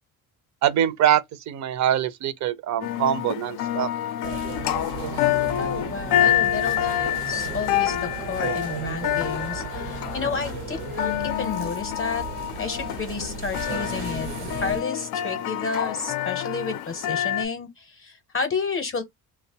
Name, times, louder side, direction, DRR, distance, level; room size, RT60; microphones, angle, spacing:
voice 1, 0.6-3.9, right 10 dB, 45° right, 0.5 m, -23 dB
sound 1, 2.8-17.5, left 12 dB, 75° left, 0.5 m, -27 dB
sound 2, 4.2-14.8, right 7 dB, 85° right, 0.9 m, -35 dB
voice 2, 5.6-19.0, left 5 dB, 35° left, 0.7 m, -31 dB
2.7 x 2.0 x 2.7 m
cardioid pair, 95°, 39 cm